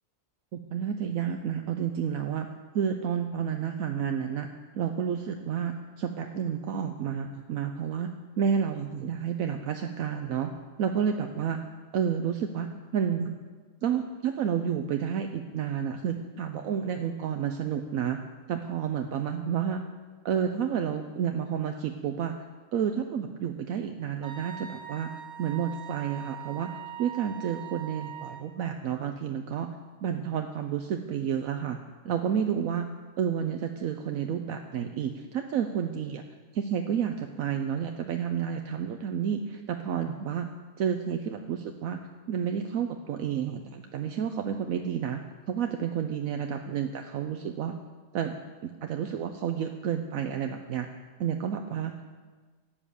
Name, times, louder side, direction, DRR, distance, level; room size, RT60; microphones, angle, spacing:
voice 1, 0.5-2.5 2.7-4.5 4.7-8.1 8.4-10.5 10.8-11.6 11.9-13.3 13.8-18.2 18.5-19.8 20.2-22.3 22.7-25.1 25.4-26.7 27.0-29.7 30.0-31.8 32.0-32.9 33.2-36.2 36.5-40.5 40.8-42.0 42.3-45.2 45.5-47.7 48.1-48.3 48.6-50.9 51.2-51.9, right 8 dB, 75° right, 5 dB, 1.1 m, -30 dB
Wind instrument woodwind instrument, 24.2-28.5, right 9 dB, 50° right, 1.4 m, -42 dB
12.5 x 8.9 x 6.9 m, 1.4 s
omnidirectional pair, 1.5 m